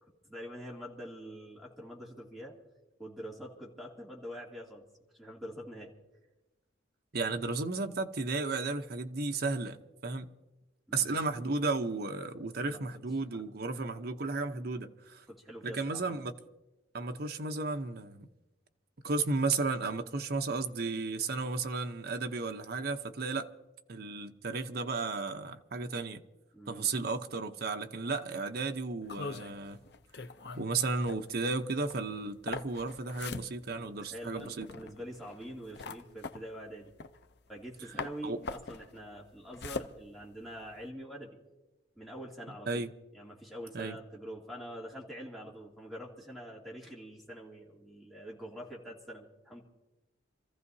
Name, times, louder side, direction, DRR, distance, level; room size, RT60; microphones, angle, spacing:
voice 1, 0.0-2.5 3.0-4.9 5.1-5.9 10.9-11.2 12.6-12.9 13.3-13.4 15.3-16.2 26.5-26.9 33.7-36.9 37.5-41.4 42.0-42.8 43.1-49.6, equal, ahead, 2.7 m, -45 dB
voice 2, 7.1-10.3 10.9-15.2 15.6-16.3 16.9-18.3 19.0-23.5 23.9-26.2 26.7-29.8 30.6-34.7 38.2-38.4 42.7-42.9 43.7-44.0, right 3 dB, 55° right, 0.8 m, -34 dB
sound 1, 29.0-37.7 38.0-40.9, left 4 dB, 65° left, 0.6 m, -43 dB
28.5 x 15.0 x 2.8 m
head